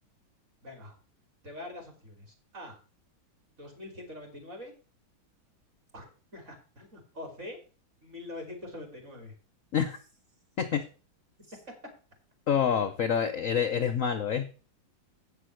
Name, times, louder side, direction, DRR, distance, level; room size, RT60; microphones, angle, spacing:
voice 1, 0.6-1.0 1.4-2.3 2.5-2.8 3.6-4.7 5.9-7.6 8.0-9.3, left 2 dB, 35° right, 2 dB, 3.4 m, -44 dB
voice 2, 12.5-14.4, left 7 dB, 55° left, 7 dB, 0.9 m, -27 dB
8.4 x 6.2 x 6.3 m, 0.36 s
omnidirectional pair, 2.2 m